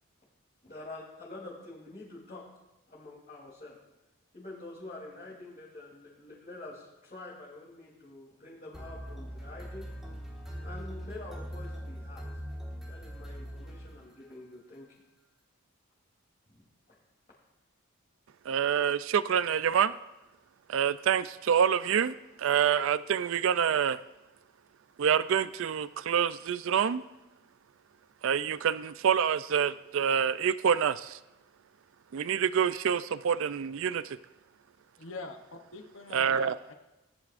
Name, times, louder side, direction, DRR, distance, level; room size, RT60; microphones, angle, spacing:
voice 1, 0.6-2.4 2.9-3.7 4.3-9.9 10.6-12.2 12.9-14.9, left 2 dB, 35° left, -9 dB, 3.0 m, -46 dB
sound 1, 8.7-14.4, equal, ahead, 1.6 m, -41 dB
voice 2, 18.5-19.9 20.7-24.0 25.0-27.0 28.2-31.2 32.1-34.2 36.1-36.6, right 8 dB, 60° right, 15 dB, 0.3 m, -27 dB
voice 3, 35.0-36.7, left 3 dB, 60° left, 5 dB, 0.9 m, -44 dB
19.0 x 10.5 x 2.5 m, 1.0 s
head